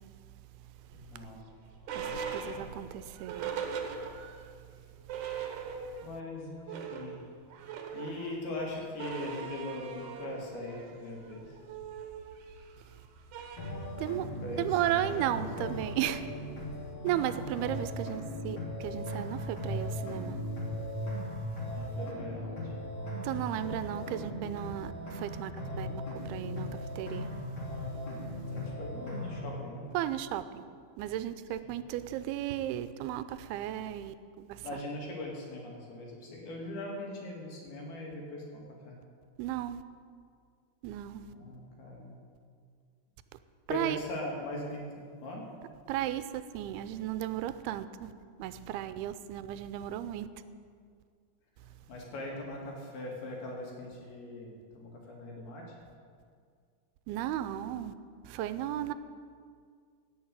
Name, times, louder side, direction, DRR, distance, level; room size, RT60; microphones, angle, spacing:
voice 1, 0.9-1.4 2.0-2.7 6.0-7.2 7.9-11.6 14.4-15.7 21.8-22.7 28.5-29.9 31.6-31.7 34.6-39.0 41.3-42.2 43.7-45.5 51.9-55.8, left 2 dB, 75° left, 4.3 m, -41 dB
sound 1, 0.9-4.5 4.8-4.9 5.1-6.2 6.5-16.9, right 6 dB, 65° right, 2.2 m, -41 dB
voice 2, 1.9-3.5 12.8-12.9 14.0-14.3 14.6-16.3 17.0-20.4 23.2-27.3 29.9-30.6 31.0-34.8 39.4-39.8 40.8-41.3 43.7-44.0 45.9-48.1 48.4-50.3 57.1-57.9 58.2-58.9, right 12 dB, 85° right, 2.6 m, -35 dB
sound 2, 13.6-29.6, left 1 dB, 35° left, 3.2 m, -38 dB
16.0 x 7.0 x 8.8 m
omnidirectional pair, 4.4 m